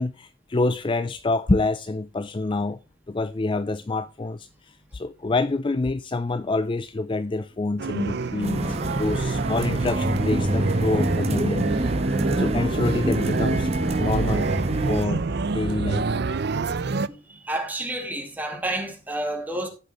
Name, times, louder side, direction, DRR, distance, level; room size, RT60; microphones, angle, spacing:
voice 1, 0.0-2.8 3.1-11.7 12.4-13.7 14.0-14.5 14.9-16.2, left 2 dB, 25° left, 0.4 m, -27 dB
sound 1, 7.8-17.1, right 4 dB, 55° right, 0.5 m, -27 dB
sound 2, 8.4-15.0, right 1 dB, 30° right, 1.3 m, -26 dB
voice 2, 17.3-19.7, right 1 dB, 10° right, 2.5 m, -29 dB
15.0 x 6.3 x 3.1 m
head